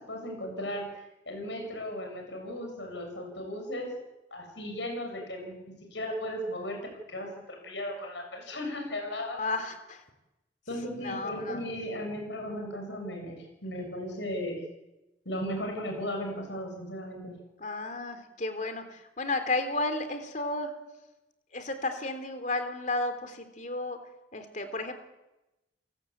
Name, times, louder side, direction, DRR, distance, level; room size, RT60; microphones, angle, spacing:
voice 1, 0.1-3.9 4.3-6.8 7.1-9.4 10.7-14.6 15.3-17.4, equal, 85° left, 3 dB, 7.4 m, -36 dB
voice 2, 9.4-10.0 11.0-11.6 17.6-20.7 21.5-24.0 24.3-24.9, left 2 dB, 45° left, 8 dB, 3.5 m, -33 dB
30.0 x 18.5 x 8.7 m, 0.99 s
head